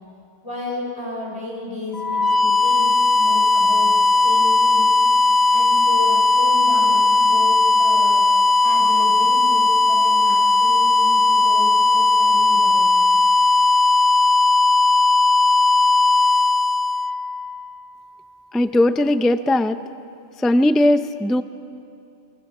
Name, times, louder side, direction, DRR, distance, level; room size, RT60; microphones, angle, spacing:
voice 1, 0.4-3.9 4.2-4.9 5.5-8.2 8.6-12.9, left 2 dB, 25° left, -3 dB, 5.9 m, -32 dB
sound 1, 1.9-17.7, left 3 dB, 40° left, 0.8 m, -17 dB
voice 2, 18.5-19.8 20.4-21.4, left 1 dB, ahead, 10 dB, 0.4 m, -18 dB
28.0 x 23.0 x 7.4 m, 2.6 s
omnidirectional pair, 1.3 m